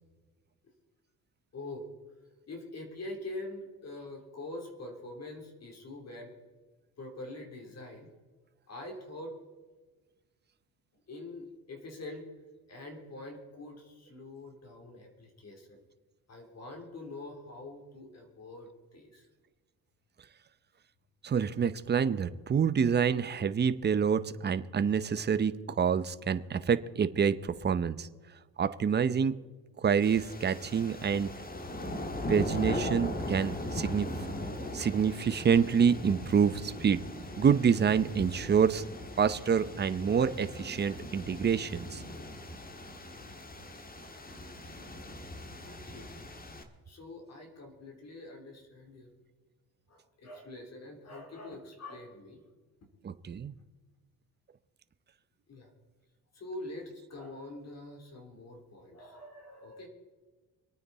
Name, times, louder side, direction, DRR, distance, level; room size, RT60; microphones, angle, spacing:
voice 1, 1.5-1.9 2.5-6.3 7.0-8.1 8.7-9.3 11.1-12.3 12.7-15.8 16.3-19.3 45.6-46.1 46.9-49.1 49.9-52.4 55.5-55.7 56.3-59.9, left 2 dB, 45° left, 2 dB, 3.6 m, -44 dB
voice 2, 21.2-28.1 28.6-29.3 29.8-31.3 32.3-34.1 34.7-37.0 37.4-38.8 39.2-42.0 53.0-53.5, right 7 dB, 25° right, 13 dB, 0.7 m, -27 dB
sound 1, 30.0-46.6, left 1 dB, 25° left, 1.8 m, -39 dB
25.5 x 9.3 x 4.2 m, 1.3 s
cardioid pair, 110°, 38 cm